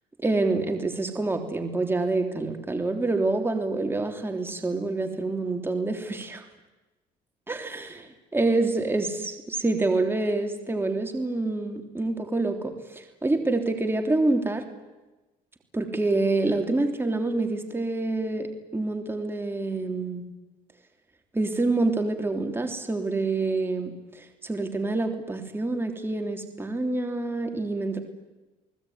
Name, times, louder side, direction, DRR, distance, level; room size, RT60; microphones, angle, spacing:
voice 1, 0.2-6.4 7.5-8.0 8.3-14.6 15.7-20.2 21.3-28.0, right 2 dB, 15° right, 4 dB, 3.3 m, -27 dB
30.0 x 19.0 x 9.7 m, 1.1 s
cardioid pair, 110°, 17 cm